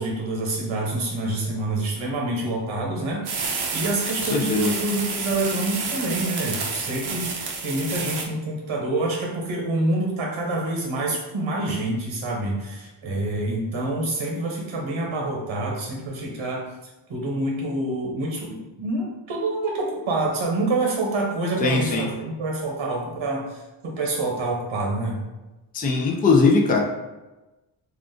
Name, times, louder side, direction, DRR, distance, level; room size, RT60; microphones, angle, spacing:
voice 1, 0.0-3.2 3.7-16.6 17.1-25.2, right 2 dB, 80° right, -2 dB, 1.0 m, -27 dB
sound 1, 3.2-8.3, right 4 dB, 55° right, 0.6 m, -29 dB
voice 2, 4.3-4.7 21.6-22.1 25.7-26.8, left 4 dB, 20° left, 1 dB, 0.3 m, -20 dB
2.4 x 2.4 x 3.6 m, 1.1 s
cardioid pair, 95°, 48 cm